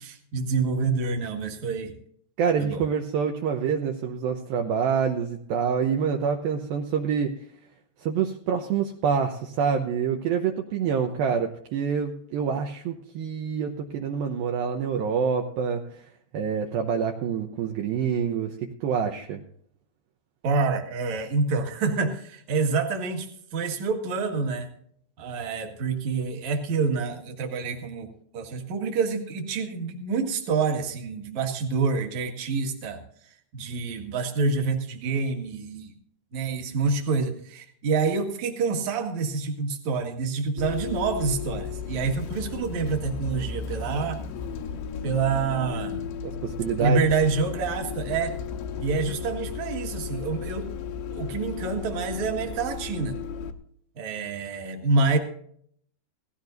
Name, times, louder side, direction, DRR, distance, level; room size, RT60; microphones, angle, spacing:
voice 1, 0.0-2.0 2.6-2.8 20.4-24.7 25.2-33.0 33.5-35.9 36.3-44.2 45.0-46.1 46.8-48.4 48.8-50.7 51.1-53.2 54.0-55.2, right 4 dB, 55° right, 3 dB, 2.6 m, -27 dB
voice 2, 2.4-7.3 8.0-19.4 46.2-47.0, right 7 dB, 75° right, 3 dB, 2.5 m, -26 dB
Bus, 40.6-53.5, left 6 dB, 85° left, 3.2 m, -34 dB
17.5 x 15.5 x 2.6 m, 0.66 s
omnidirectional pair, 4.7 m